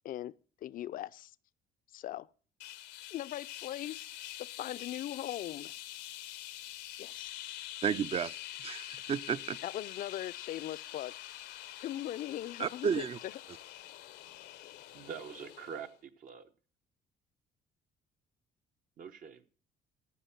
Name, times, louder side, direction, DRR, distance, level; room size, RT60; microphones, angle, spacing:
voice 1, 0.6-1.3 1.9-2.3 3.1-5.7 7.0-7.5 9.6-11.1 11.8-13.1, left 13 dB, 55° left, 0.4 m, -40 dB
sound 1, 2.6-15.9, left 14 dB, 85° left, 0.8 m, -46 dB
voice 2, 7.8-9.6 12.6-13.2, right 7 dB, 35° right, 0.5 m, -33 dB
voice 3, 14.9-16.5 19.0-19.4, right 7 dB, 55° right, 0.8 m, -44 dB
14.0 x 5.5 x 5.8 m
cardioid pair, 110°, 17 cm